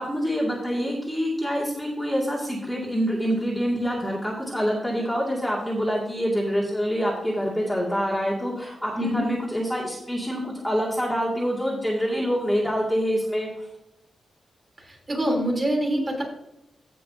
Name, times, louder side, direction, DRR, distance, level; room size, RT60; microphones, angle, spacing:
voice 1, 0.0-13.5, equal, 5° left, -5 dB, 2.2 m, -26 dB
voice 2, 14.8-16.2, equal, 30° right, -1 dB, 3.3 m, -25 dB
16.0 x 6.0 x 2.7 m, 0.85 s
wide cardioid pair, 145°, 0 cm